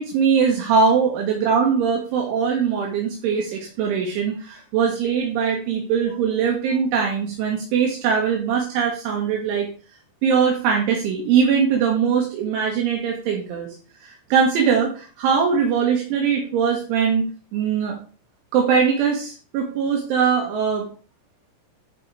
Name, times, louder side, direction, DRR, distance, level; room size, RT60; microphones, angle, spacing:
voice 1, 0.0-9.7 10.2-13.7 14.0-18.0 18.5-20.9, right 6 dB, 75° right, 0 dB, 3.7 m, -21 dB
11.0 x 5.2 x 4.7 m, 0.39 s
omnidirectional pair, 5.9 m